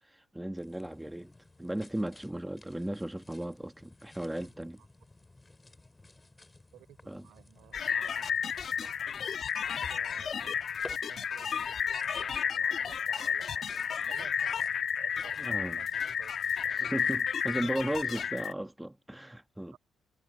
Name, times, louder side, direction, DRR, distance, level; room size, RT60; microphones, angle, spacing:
voice 1, 0.1-1.3 1.6-4.8 7.1-7.3 15.4-15.8 16.7-19.8, right 1 dB, 5° right, 1.4 m, -36 dB
sound 1, 0.6-18.3, left 2 dB, 20° left, 4.1 m, -56 dB
voice 2, 4.3-4.9 6.7-8.3 8.8-8.9 9.8-14.7 15.0-16.7 19.7-19.8, right 13 dB, 90° right, 3.8 m, -55 dB
sound 2, 7.7-18.5, left 7 dB, 55° left, 1.3 m, -32 dB
cardioid pair, 90°, 0 cm